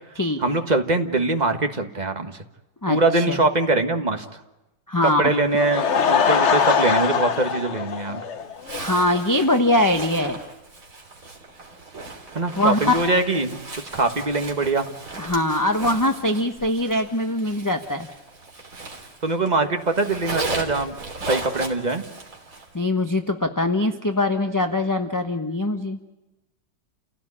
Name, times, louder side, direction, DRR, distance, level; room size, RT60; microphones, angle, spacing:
voice 1, 0.4-2.3 2.9-4.2 5.0-8.2 12.3-13.6 13.9-14.9 19.2-20.9 21.3-22.0, right 2 dB, 25° right, 6 dB, 1.5 m, -22 dB
voice 2, 2.8-3.4 4.9-5.3 8.8-10.4 12.5-12.8 15.2-18.1 22.7-26.0, left 1 dB, 15° left, 6 dB, 0.8 m, -22 dB
Laughter / Crowd, 5.4-8.8 9.2-9.3 9.8-9.9 10.1-10.2, left 6 dB, 45° left, 1.2 m, -22 dB
Zipper (clothing), 8.6-19.5 19.8-22.7, right 3 dB, 45° right, 3.6 m, -36 dB
29.5 x 17.0 x 9.9 m, 1.0 s
omnidirectional pair, 1.9 m